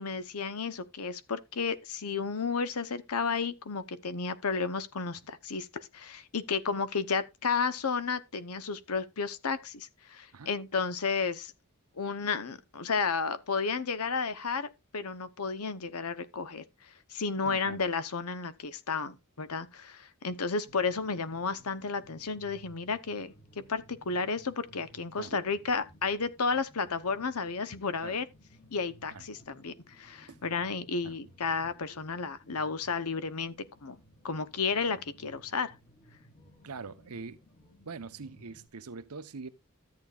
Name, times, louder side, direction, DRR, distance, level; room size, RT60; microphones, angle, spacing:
voice 1, 0.0-11.5 12.0-14.7 14.9-16.6 17.1-28.2 28.7-33.5 33.8-34.0 34.2-35.7, left 5 dB, 80° left, 0.9 m, -32 dB
voice 2, 17.4-17.8 25.2-25.4 28.0-28.2 29.1-29.2 30.3-30.4 31.0-31.1 36.6-37.4 37.8-39.5, right 4 dB, 80° right, 0.9 m, -43 dB
sound 1, 20.6-38.7, equal, 35° left, 2.2 m, -58 dB
13.5 x 8.4 x 2.4 m
head